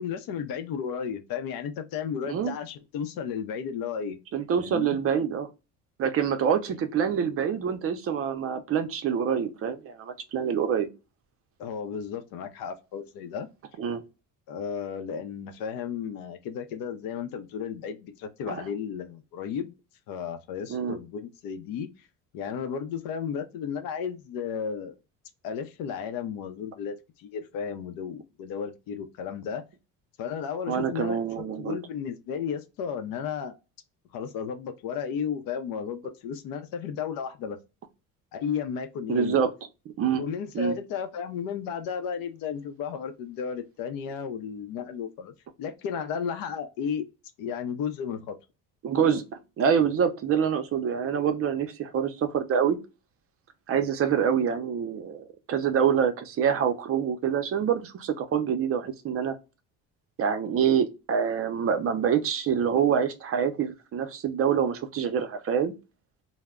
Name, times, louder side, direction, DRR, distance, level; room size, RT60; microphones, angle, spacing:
voice 1, 0.0-4.2 4.6-5.0 11.6-13.5 14.5-19.7 20.1-21.9 22.3-25.0 25.4-29.6 30.2-33.5 34.1-37.6 38.3-39.4 40.2-45.3 45.6-47.1 47.4-48.4, left 7 dB, 80° left, 0.6 m, -33 dB
voice 2, 4.3-5.5 6.0-10.9 13.8-14.0 18.5-18.6 20.7-21.0 30.7-31.8 39.1-39.5 40.0-40.2 40.5-40.8 48.8-49.2 49.6-52.8 53.7-59.3 60.2-65.7, right 7 dB, 40° right, 0.5 m, -26 dB
2.1 x 2.0 x 3.4 m
cardioid pair, 120°, 35 cm